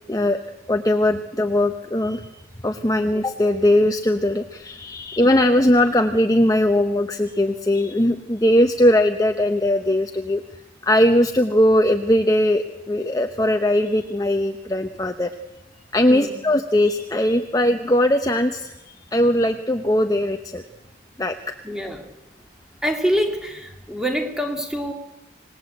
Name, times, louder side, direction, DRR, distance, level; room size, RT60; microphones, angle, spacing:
voice 1, 0.1-0.4 0.7-2.3 2.6-10.4 10.8-15.3 15.9-20.6 21.2-21.4, left 1 dB, 20° left, 6 dB, 0.9 m, -20 dB
voice 2, 16.1-16.4 21.6-22.0 22.8-24.9, equal, 5° right, 3 dB, 2.7 m, -25 dB
26.5 x 19.5 x 8.1 m, 0.97 s
head